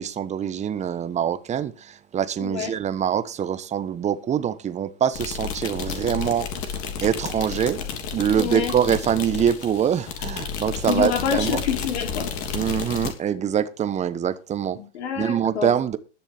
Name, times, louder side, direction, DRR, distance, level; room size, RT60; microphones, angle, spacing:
voice 1, 0.0-6.5 7.0-7.8 8.1-11.6 12.5-14.8 15.2-16.0, right 9 dB, 20° right, 1.1 m, -24 dB
voice 2, 2.4-2.7 8.4-8.7 10.8-12.3 14.7-15.7, left 7 dB, 60° left, 3.3 m, -27 dB
sound 1, 5.1-13.1, left 6 dB, 35° left, 3.2 m, -31 dB
20.5 x 7.1 x 3.6 m
figure-of-eight pair, 100°, 37 cm